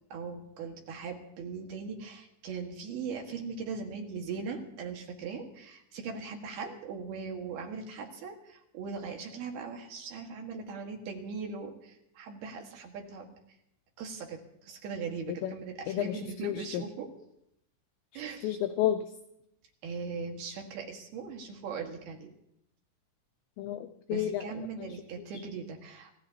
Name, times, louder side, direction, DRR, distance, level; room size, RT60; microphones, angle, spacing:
voice 1, 0.1-13.3 14.0-17.1 18.1-18.6 19.8-22.3 24.1-26.1, right 5 dB, 60° right, 2 dB, 3.1 m, -39 dB
voice 2, 15.9-16.8 18.4-19.1 23.6-24.4, left 11 dB, 85° left, 8 dB, 2.6 m, -31 dB
27.0 x 16.0 x 2.9 m, 0.80 s
omnidirectional pair, 5.8 m